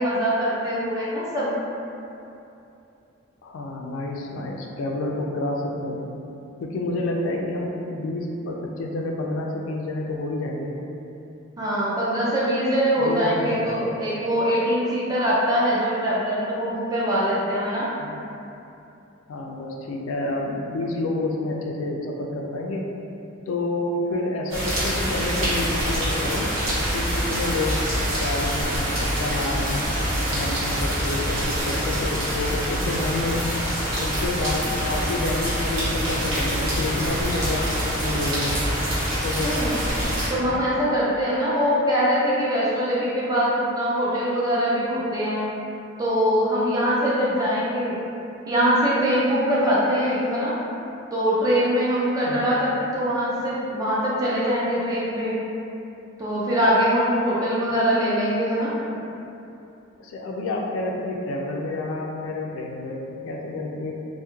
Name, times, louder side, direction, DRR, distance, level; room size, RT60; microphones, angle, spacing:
voice 1, 0.0-1.6 11.6-17.9 39.4-39.7 40.3-45.4 46.0-47.9 48.5-50.5 51.1-55.4 56.2-58.7, equal, 15° right, -8 dB, 0.4 m, -23 dB
voice 2, 3.4-6.1 6.6-10.8 12.9-14.0 18.0-18.2 19.3-22.9 23.5-26.6 26.9-27.8 28.1-29.9 30.3-33.5 34.0-38.6 39.2-39.5 40.5-40.7 52.2-52.5 58.9-59.1 60.0-64.0, left 2 dB, 80° left, 0 dB, 0.3 m, -29 dB
sound 1, 24.5-40.3, equal, 85° right, 0.8 m, -25 dB
2.3 x 2.1 x 2.9 m, 2.8 s
head